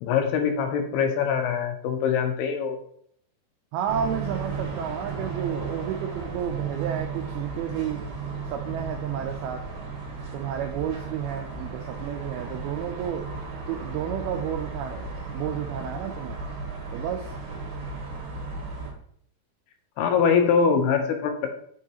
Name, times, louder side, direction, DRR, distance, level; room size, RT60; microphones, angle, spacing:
voice 1, 0.0-2.8 20.0-21.5, left 6 dB, 80° left, 4 dB, 2.5 m, -23 dB
voice 2, 3.7-8.1 8.5-9.7 10.3-13.3 13.7-16.4 16.9-17.3, right 9 dB, 90° right, 3 dB, 2.2 m, -31 dB
sound 1, 3.9-18.9, right 4 dB, 65° right, 3.0 m, -35 dB
8.3 x 4.7 x 2.9 m, 0.66 s
omnidirectional pair, 5.0 m